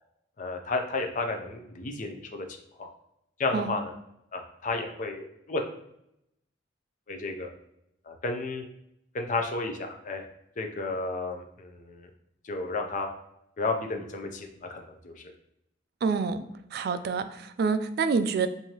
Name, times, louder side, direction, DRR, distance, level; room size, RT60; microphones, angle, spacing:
voice 1, 0.4-2.5 2.8-2.9 3.4-3.8 4.3-5.6 7.1-7.5 8.1-8.6 9.1-10.2 10.6-12.1 12.4-13.1 13.6-15.1, left 3 dB, 45° left, 3 dB, 0.5 m, -32 dB
voice 2, 16.0-16.4 16.7-18.5, right 5 dB, 55° right, 10 dB, 0.3 m, -27 dB
4.6 x 2.7 x 2.8 m, 0.79 s
head